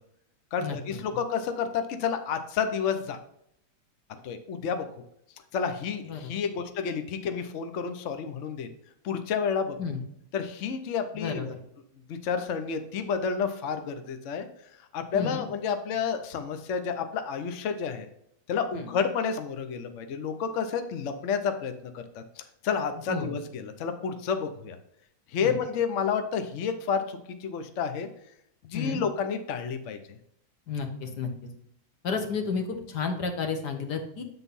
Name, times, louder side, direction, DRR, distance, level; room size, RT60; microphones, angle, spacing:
voice 1, 0.5-3.2 4.2-4.9 5.5-8.7 9.0-9.8 10.3-11.5 12.1-14.5 14.9-18.1 18.5-24.8 25.3-28.1 28.6-30.2, left 6 dB, 75° left, 8 dB, 0.6 m, -30 dB
voice 2, 11.1-11.6 15.1-15.5 18.7-18.9 23.1-23.3 25.4-25.6 28.7-29.0 30.7-31.5 32.0-34.2, left 5 dB, 60° left, 5 dB, 1.6 m, -32 dB
8.0 x 3.9 x 5.3 m, 0.74 s
omnidirectional pair, 2.2 m